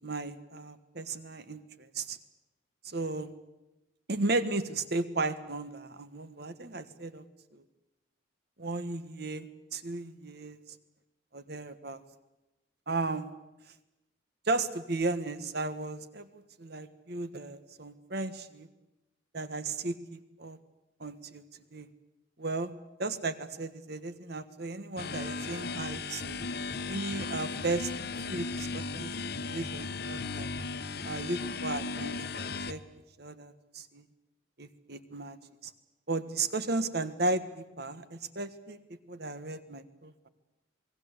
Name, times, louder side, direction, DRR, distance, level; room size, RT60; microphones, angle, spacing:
voice 1, 0.0-2.2 2.8-3.3 4.1-7.2 7.5-7.6 8.6-10.6 11.3-12.0 12.9-13.3 14.5-18.7 19.3-20.6 21.0-21.4 21.7-21.9 22.4-22.7 23.0-26.5 26.9-27.9 28.3-29.1 29.5-30.5 31.0-32.8 33.2-34.0 34.6-35.4 35.6-35.7 36.1-38.8 39.1-40.3, right 2 dB, 55° right, 12 dB, 1.5 m, -35 dB
sound 1, 25.0-32.7, left 4 dB, 55° left, 1.1 m, -36 dB
27.5 x 20.0 x 8.2 m, 0.99 s
head